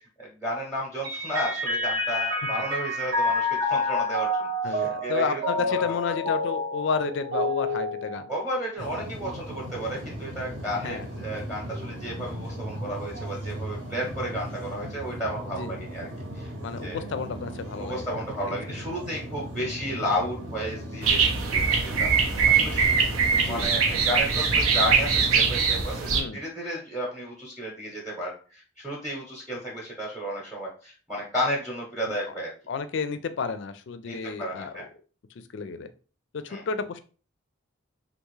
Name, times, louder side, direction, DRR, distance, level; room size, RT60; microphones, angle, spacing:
voice 1, 0.0-5.4 5.7-6.1 8.3-16.1 16.3-16.5 16.8-17.1 17.8-22.1 22.5-23.1 23.5-32.5 34.0-34.9 36.5-36.6, equal, ahead, -2 dB, 0.8 m, -33 dB
Mallet percussion, 1.0-8.8, left 1 dB, 50° right, 0.6 m, -28 dB
voice 2, 4.6-8.3 10.8-11.0 15.6-15.7 16.6-18.1 18.5-18.6 23.3-23.7 26.1-26.4 32.7-34.8 35.5-35.9 36.3-37.0, left 5 dB, 60° left, 11 dB, 0.4 m, -31 dB
sound 1, 8.8-25.6, equal, 70° right, 1.0 m, -37 dB
sound 2, 21.0-26.2, right 5 dB, 90° right, 0.7 m, -22 dB
3.4 x 2.5 x 3.1 m, 0.37 s
head